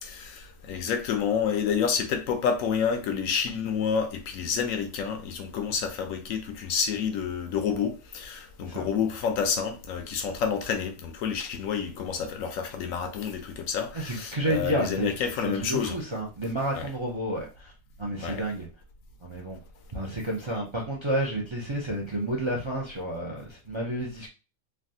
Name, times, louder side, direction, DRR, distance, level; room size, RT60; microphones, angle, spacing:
voice 1, 0.0-16.0 16.7-16.9 18.2-18.4, left 7 dB, 85° left, 1.0 m, -29 dB
voice 2, 13.9-17.7 18.0-18.7 19.2-19.6 19.9-24.3, right 1 dB, 35° right, 0.4 m, -30 dB
3.3 x 2.3 x 2.6 m
omnidirectional pair, 1.4 m